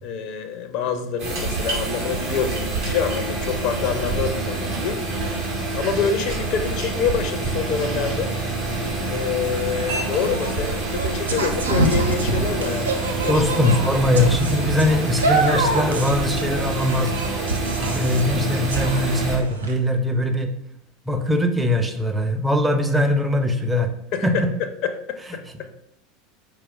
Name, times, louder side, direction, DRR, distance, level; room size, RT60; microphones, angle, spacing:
voice 1, 0.0-5.0 5.7-8.3 9.1-12.9 13.2-13.4 24.1-25.7, left 6 dB, 50° left, 8 dB, 0.5 m, -26 dB
sound 1, 1.2-19.4, right 3 dB, 60° right, 1.7 m, -27 dB
sound 2, 9.6-19.7, right 2 dB, 80° right, 0.5 m, -27 dB
voice 2, 13.3-17.1 17.8-20.5 21.1-23.9 24.2-24.3, left 1 dB, 10° right, 5 dB, 0.6 m, -21 dB
4.9 x 4.3 x 2.5 m, 0.76 s
figure-of-eight pair, 80°, 0 cm